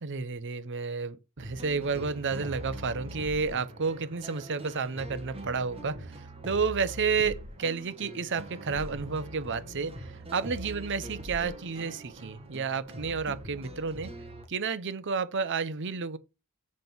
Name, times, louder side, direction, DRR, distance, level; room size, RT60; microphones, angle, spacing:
voice 1, 0.0-14.1 14.5-16.2, right 5 dB, 55° right, 0.8 m, -31 dB
sound 1, 1.4-14.4, equal, 25° right, 1.7 m, -43 dB
7.5 x 5.4 x 6.1 m
head